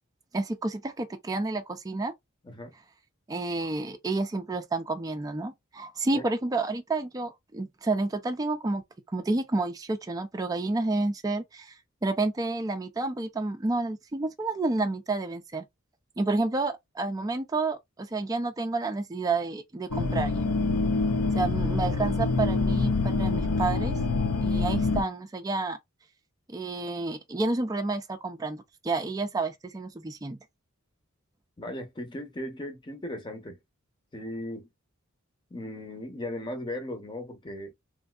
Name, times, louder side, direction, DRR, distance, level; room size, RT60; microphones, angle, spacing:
voice 1, 0.3-2.1 3.3-8.8 9.1-11.8 12.0-15.7 16.2-20.5 21.4-23.9 24.4-25.8 26.5-30.4, right 3 dB, 15° right, 0.3 m, -30 dB
sound 1, 19.9-25.0, left 3 dB, 85° left, 0.5 m, -26 dB
voice 2, 31.6-33.6 34.1-34.7 35.5-37.7, left 1 dB, 20° left, 0.8 m, -37 dB
3.1 x 2.6 x 2.4 m
head